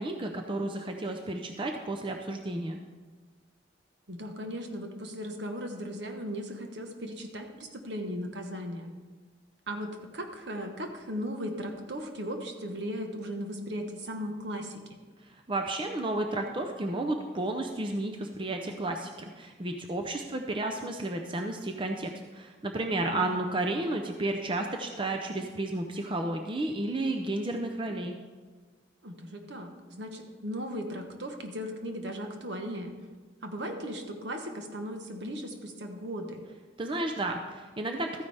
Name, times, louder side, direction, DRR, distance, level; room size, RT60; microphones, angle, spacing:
voice 1, 0.0-2.8 15.3-28.1 36.8-38.2, right 2 dB, 25° right, 3 dB, 0.6 m, -32 dB
voice 2, 4.1-8.9 9.7-15.0 23.0-23.4 29.0-33.0 33.4-36.4, equal, 65° right, 5 dB, 1.2 m, -37 dB
13.5 x 9.4 x 3.4 m, 1.3 s
head